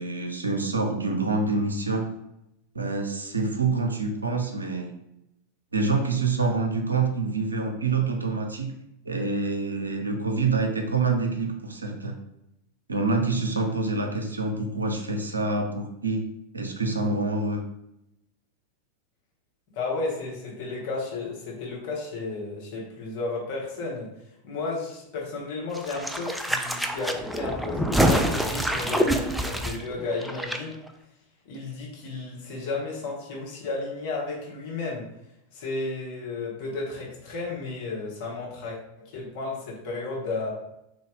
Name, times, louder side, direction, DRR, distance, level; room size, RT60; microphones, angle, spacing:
voice 1, 0.0-2.1 2.7-4.9 5.7-8.7 9.1-12.2 12.9-16.3 16.5-17.6, right 3 dB, 75° right, 4 dB, 0.6 m, -26 dB
voice 2, 19.7-24.1 24.4-30.8 31.4-35.1 35.5-40.5, left 3 dB, 50° left, -3 dB, 1.4 m, -33 dB
sound 1, 25.7-30.6 30.9-31.0, equal, ahead, 0.4 m, -26 dB
3.8 x 3.0 x 3.5 m, 0.84 s
figure-of-eight pair, 90°, 0 cm